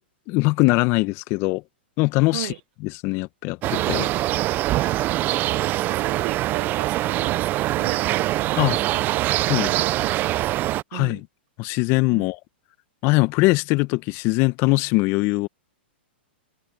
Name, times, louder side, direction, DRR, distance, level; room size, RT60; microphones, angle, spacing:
voice 1, 0.3-1.6 2.0-2.5 2.8-4.1 8.6-8.8 9.5-9.7 10.9-11.3 11.6-12.4 13.0-15.5, left 24 dB, 40° left, 1.3 m, -21 dB
sound 1, 3.6-10.8, right 16 dB, 30° right, 0.5 m, -23 dB
voice 2, 5.3-7.5 7.7-10.6 10.9-11.2 12.1-12.3, right 18 dB, 55° right, 0.8 m, -36 dB
hypercardioid pair, 115°, 6 cm